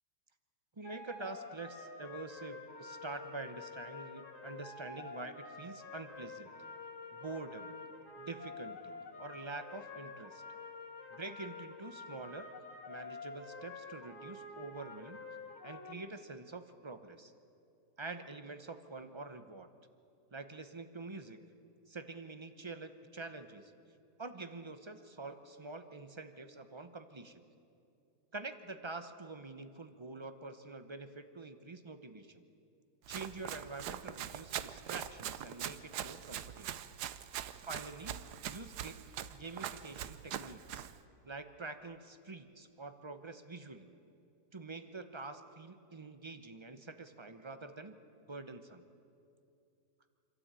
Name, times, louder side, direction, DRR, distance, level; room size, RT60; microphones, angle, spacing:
sound 1, 0.8-15.9, left 4 dB, 70° left, 3.8 m, -48 dB
voice 1, 0.8-6.5 7.1-7.8 8.2-10.4 11.1-12.5 12.9-15.3 15.6-17.3 18.0-19.7 20.3-21.4 21.9-23.7 24.2-27.4 28.3-32.4 33.1-36.8 37.6-39.0 39.3-40.9 41.2-43.9 44.5-48.0 48.3-48.8, right 3 dB, 25° right, 9 dB, 0.7 m, -46 dB
Run, 33.1-41.0, right 10 dB, 90° right, 1.3 m, -43 dB
26.5 x 13.0 x 8.9 m, 2.6 s
omnidirectional pair, 1.7 m